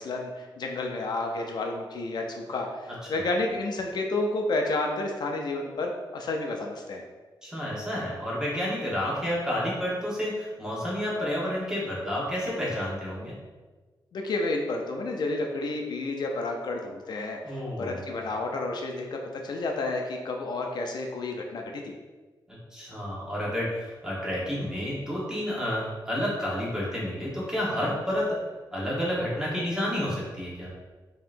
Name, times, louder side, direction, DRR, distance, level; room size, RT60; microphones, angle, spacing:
voice 1, 0.0-7.0 14.1-21.9, left 2 dB, 65° left, 2 dB, 0.4 m, -31 dB
voice 2, 7.4-13.3 17.4-18.0 22.5-28.3 28.7-30.7, equal, 10° right, -6 dB, 1.1 m, -30 dB
5.4 x 2.8 x 2.5 m, 1.3 s
wide cardioid pair, 165°, 8 cm